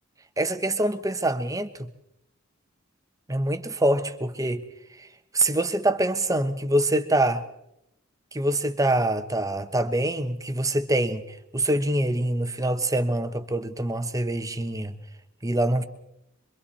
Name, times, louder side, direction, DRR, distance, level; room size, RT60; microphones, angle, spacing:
voice 1, 0.4-1.9 3.3-4.6 5.3-7.4 8.3-14.9 15.4-15.8, right 1 dB, 15° right, 1.2 m, -25 dB
26.5 x 24.0 x 4.3 m
head